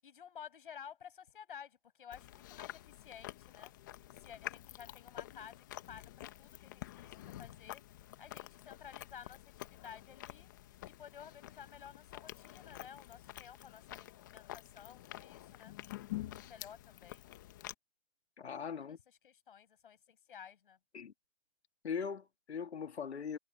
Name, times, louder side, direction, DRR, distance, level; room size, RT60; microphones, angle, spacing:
voice 1, 0.0-3.7 4.1-5.6 5.9-7.8 8.2-10.5 10.8-15.7 16.1-17.3 18.9-20.8, left 8 dB, 50° left, 7.8 m, -53 dB
Chewing mastication, 2.1-17.7, left 15 dB, 15° left, 1.1 m, -49 dB
voice 2, 18.4-19.0 20.9-21.1 21.8-23.4, left 6 dB, 65° left, 2.6 m, -40 dB
hypercardioid pair, 170°, 35 cm